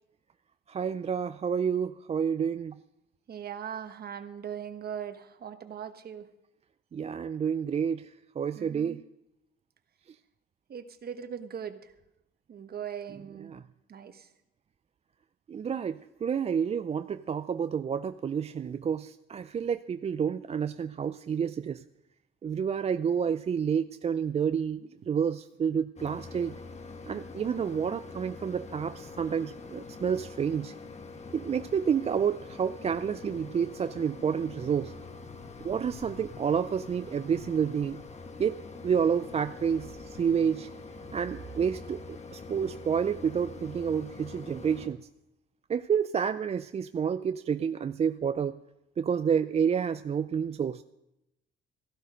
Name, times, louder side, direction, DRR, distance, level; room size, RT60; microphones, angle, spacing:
voice 1, 0.7-2.8 6.9-9.0 13.5-13.6 15.5-21.8 22.4-24.8 25.1-26.6 27.1-30.7 31.3-34.9 35.6-38.0 38.4-40.7 41.1-45.0 45.7-48.6 49.0-50.8, right 7 dB, 30° right, 11 dB, 0.4 m, -29 dB
voice 2, 3.3-6.3 8.5-9.0 10.7-11.9 12.5-13.5 13.9-14.3 25.0-25.1, right 8 dB, 50° right, 9 dB, 1.1 m, -40 dB
Mechanisms, 26.0-44.9, left 4 dB, 35° left, 1.3 m, -45 dB
14.5 x 12.0 x 5.1 m, 0.89 s
cardioid pair, 90°, 20 cm